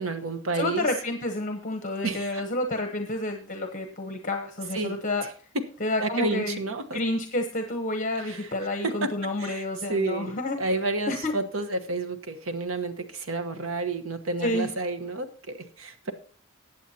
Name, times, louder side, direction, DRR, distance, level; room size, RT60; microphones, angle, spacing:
voice 1, 0.0-0.9 2.0-2.4 4.7-5.0 6.0-7.0 8.2-8.5 8.8-9.1 9.4-10.3 10.6-16.1, right 3 dB, 70° right, 9 dB, 1.1 m, -30 dB
voice 2, 0.5-5.3 5.8-6.6 6.9-10.6 11.1-11.4 14.4-14.7, left 2 dB, 40° left, 6 dB, 1.0 m, -29 dB
19.5 x 8.2 x 2.8 m, 0.44 s
head